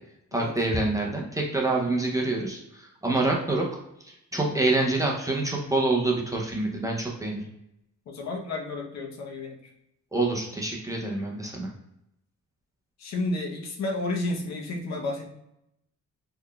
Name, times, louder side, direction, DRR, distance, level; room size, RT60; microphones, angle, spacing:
voice 1, 0.3-3.7 4.3-7.4 10.1-11.7, right 2 dB, 10° right, -2 dB, 0.5 m, -26 dB
voice 2, 8.1-9.6 13.0-15.3, left 2 dB, 60° left, 1 dB, 0.8 m, -31 dB
3.8 x 3.2 x 2.2 m, 0.81 s
wide cardioid pair, 165°, 30 cm